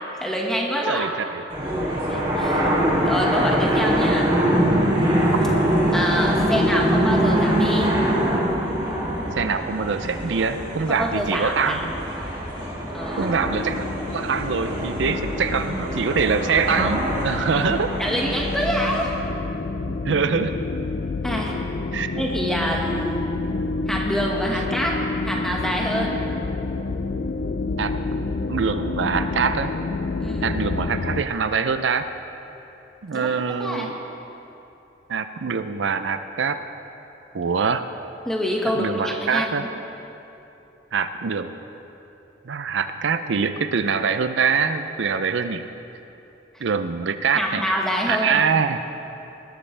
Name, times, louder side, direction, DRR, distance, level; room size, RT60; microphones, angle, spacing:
voice 1, 0.2-1.1 2.1-2.7 3.0-4.3 5.9-7.9 10.9-11.9 12.9-13.3 18.0-19.1 21.2-21.6 22.2-23.2 23.9-25.0 25.2-26.2 30.2-30.5 33.1-33.9 38.2-39.7 46.5-46.6 47.3-48.5, equal, 5° left, -2 dB, 1.6 m, -26 dB
voice 2, 0.9-1.4 9.3-11.9 13.2-13.8 14.1-17.9 20.0-20.6 21.9-22.2 27.8-27.9 28.5-29.7 30.4-32.1 33.0-33.9 35.1-36.6 37.3-37.8 38.8-39.7 40.9-41.5 42.5-45.6 46.6-47.6 48.1-48.8, right 5 dB, 80° right, 10 dB, 0.5 m, -24 dB
sound 1, 1.5-19.0, equal, 25° right, 3.3 m, -23 dB
sound 2, 13.4-31.2, left 3 dB, 60° left, 0.5 m, -29 dB
20.0 x 12.5 x 3.4 m, 3.0 s
head